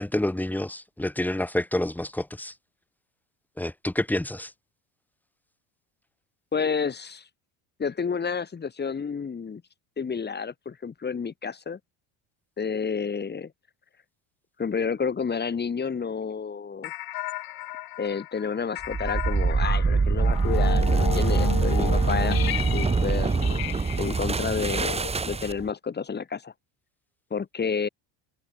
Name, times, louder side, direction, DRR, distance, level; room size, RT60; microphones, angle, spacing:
voice 1, 0.0-2.5 3.6-4.5, left 1 dB, 5° left, 2.1 m, -28 dB
voice 2, 6.5-7.3 7.8-9.6 10.0-11.8 12.6-13.5 14.6-16.9 18.0-23.6 24.0-25.0 25.3-26.5 27.3-27.9, left 6 dB, 20° left, 7.2 m, -30 dB
sound 1, 16.8-25.7, left 15 dB, 50° left, 6.3 m, -34 dB
sound 2, 18.8-25.7, right 4 dB, 15° right, 1.7 m, -24 dB
cardioid pair, 150°, 46 cm